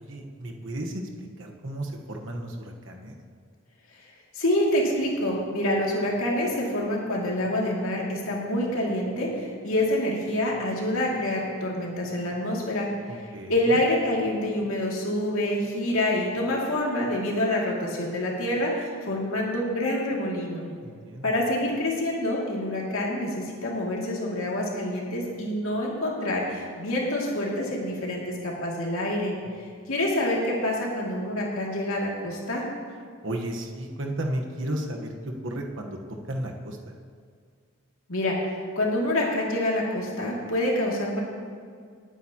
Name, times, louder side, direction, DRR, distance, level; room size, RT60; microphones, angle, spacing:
voice 1, 0.0-3.1 13.1-13.8 20.8-21.3 33.2-35.1 35.4-36.0 36.3-36.9, right 1 dB, 60° right, 2 dB, 1.2 m, -34 dB
voice 2, 4.3-12.9 13.5-20.7 21.2-29.3 29.9-32.6 38.1-38.3 38.8-41.2, left 1 dB, 80° left, -3 dB, 2.5 m, -27 dB
19.0 x 9.0 x 2.9 m, 2.1 s
head